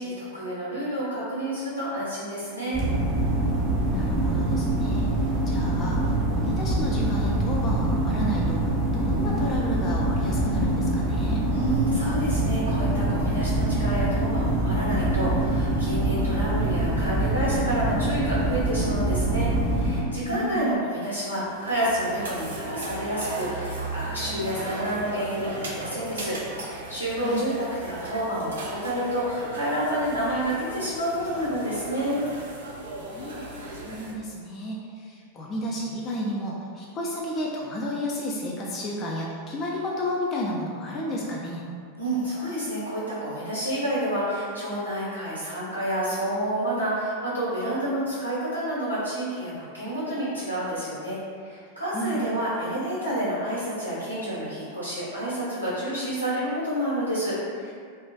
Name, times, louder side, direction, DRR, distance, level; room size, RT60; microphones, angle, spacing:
voice 1, 0.0-2.9 11.5-32.2 42.0-57.7, right 1 dB, 90° left, -9 dB, 1.0 m, -29 dB
sound 1, 2.7-20.0, right 1 dB, 10° right, 0.7 m, -24 dB
voice 2, 3.8-11.4 20.3-20.6 27.2-27.5 33.0-41.7 51.9-52.2, equal, 30° left, -3 dB, 0.3 m, -32 dB
sound 2, 21.2-34.1, right 2 dB, 65° right, 0.4 m, -36 dB
2.4 x 2.2 x 2.3 m, 2.2 s
figure-of-eight pair, 90°, 0 cm